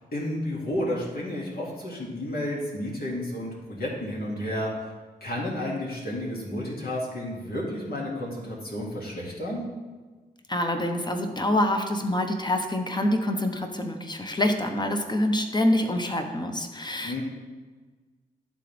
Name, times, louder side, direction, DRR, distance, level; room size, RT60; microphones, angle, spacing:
voice 1, 0.1-4.7 5.2-9.6 17.0-17.2, left 1 dB, 65° left, -4 dB, 2.3 m, -31 dB
voice 2, 10.5-17.2, left 1 dB, 25° left, 5 dB, 1.0 m, -26 dB
11.5 x 3.9 x 3.4 m, 1.4 s
cardioid pair, 45°, 17 cm